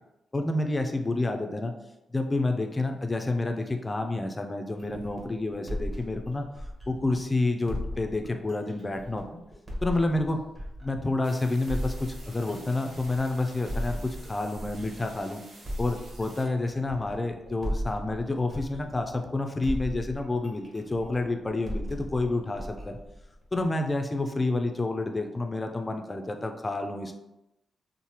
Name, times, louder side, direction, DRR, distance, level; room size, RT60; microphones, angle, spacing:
voice 1, 0.3-1.7 2.1-6.5 6.9-9.4 9.8-10.4 10.8-15.4 15.8-23.0 23.5-27.2, left 2 dB, 25° left, 5 dB, 0.3 m, -29 dB
sound 1, 4.8-7.2 7.7-11.2 11.7-15.2 15.6-19.3 19.6-23.7, equal, 20° right, 0.9 m, -37 dB
sound 2, 11.2-16.4, right 2 dB, 80° right, 0.7 m, -50 dB
3.1 x 2.0 x 2.8 m, 0.92 s
cardioid pair, 90°, 0 cm